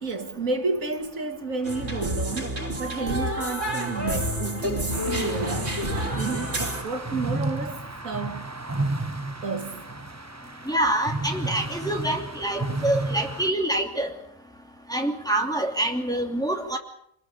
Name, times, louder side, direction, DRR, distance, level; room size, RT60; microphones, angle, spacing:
voice 1, 0.0-8.5 9.4-9.8, right 3 dB, 80° right, 2.6 m, -31 dB
sound 1, 1.6-6.8, equal, 55° right, 3.3 m, -29 dB
sound 2, 4.9-13.5, right 2 dB, 15° right, 1.0 m, -32 dB
voice 2, 10.7-14.1 14.9-16.8, right 1 dB, 5° left, 2.8 m, -26 dB
26.5 x 20.5 x 6.9 m
omnidirectional pair, 1.4 m